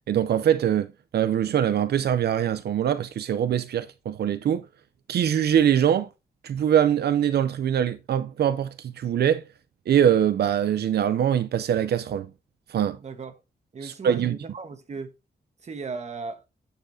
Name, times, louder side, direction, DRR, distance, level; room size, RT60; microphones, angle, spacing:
voice 1, 0.1-0.9 1.1-4.6 5.1-6.1 6.4-9.4 9.9-12.3 12.7-13.0 13.8-14.4, right 9 dB, 85° right, 0.5 m, -23 dB
voice 2, 13.0-13.4 13.7-15.1 15.6-16.4, right 4 dB, 45° right, 1.3 m, -36 dB
9.0 x 6.8 x 2.7 m
wide cardioid pair, 145°, 16 cm